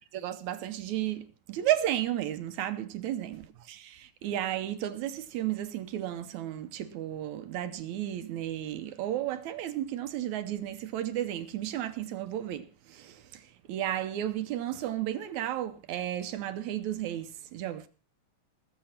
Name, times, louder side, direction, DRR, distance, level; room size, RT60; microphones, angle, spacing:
voice 1, 0.1-17.9, right 12 dB, 70° right, 2.1 m, -33 dB
20.5 x 6.9 x 5.8 m
omnidirectional pair, 3.7 m